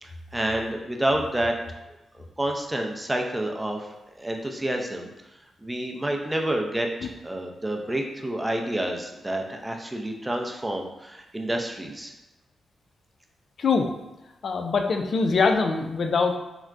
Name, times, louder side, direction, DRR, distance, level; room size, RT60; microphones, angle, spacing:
voice 1, 0.0-1.5 2.1-3.9 4.2-5.1 5.6-12.1, right 1 dB, 15° right, 2 dB, 0.5 m, -29 dB
voice 2, 14.4-16.3, left 4 dB, 65° left, 4 dB, 0.3 m, -23 dB
4.5 x 2.1 x 2.4 m, 0.97 s
cardioid pair, 60°, 0 cm